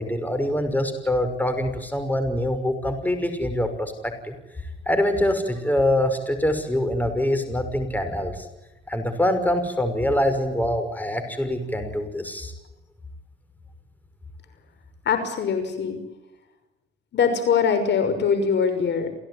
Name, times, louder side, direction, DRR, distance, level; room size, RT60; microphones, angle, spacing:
voice 1, 0.0-4.3 4.9-8.5 8.9-12.5, left 1 dB, 10° left, 8 dB, 5.7 m, -24 dB
voice 2, 15.1-16.0 17.1-19.1, left 6 dB, 60° left, 9 dB, 6.0 m, -22 dB
29.5 x 17.5 x 9.6 m, 1.0 s
cardioid pair, 90°, 20 cm